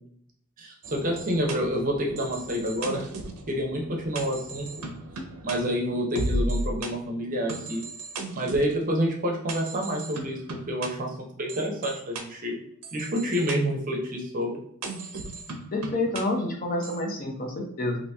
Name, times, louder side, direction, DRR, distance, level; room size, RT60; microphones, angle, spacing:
voice 1, 0.6-3.1 3.5-4.7 5.4-7.8 8.4-10.4 10.7-12.6 12.9-14.6, equal, 35° right, 1 dB, 0.6 m, -28 dB
sound 1, 0.8-6.9 7.5-8.7 9.5-10.9 11.5-12.2 12.8-13.6 14.8-16.2 16.8-17.0, right 1 dB, 85° right, 0.5 m, -35 dB
voice 2, 15.7-18.0, left 2 dB, 40° left, 1 dB, 0.6 m, -28 dB
2.8 x 2.6 x 3.3 m, 0.68 s
head